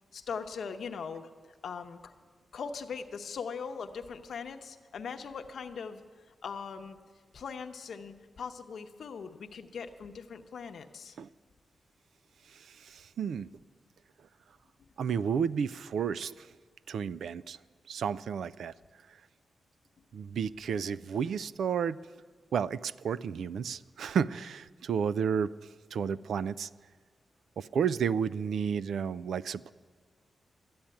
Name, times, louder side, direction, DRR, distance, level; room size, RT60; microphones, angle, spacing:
voice 1, 0.1-1.3 1.6-2.1 2.5-6.0 6.4-7.0 7.3-11.2, left 6 dB, 65° left, 7 dB, 0.8 m, -40 dB
voice 2, 12.5-13.5 15.0-16.5 16.9-17.6 17.9-18.7 20.1-22.0 22.5-26.7 27.6-29.7, right 7 dB, 85° right, 17 dB, 0.3 m, -32 dB
13.0 x 8.7 x 9.1 m, 1.5 s
wide cardioid pair, 160°, 0 cm